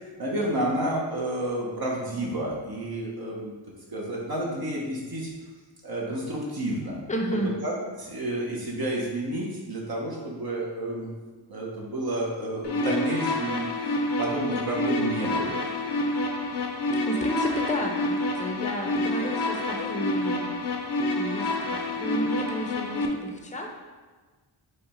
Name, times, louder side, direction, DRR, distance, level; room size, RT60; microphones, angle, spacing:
voice 1, 0.2-3.5 3.9-5.3 5.8-7.0 7.6-7.7 8.0-11.1 11.5-13.6 14.2-15.5, right 1 dB, 50° right, -4 dB, 1.0 m, -30 dB
voice 2, 7.1-7.6 17.1-20.4 21.2-23.7, equal, 15° left, 2 dB, 0.7 m, -31 dB
sound 1, 12.6-23.1, left 2 dB, 55° left, 0.7 m, -28 dB
4.8 x 2.3 x 4.3 m, 1.4 s
cardioid pair, 60°, 49 cm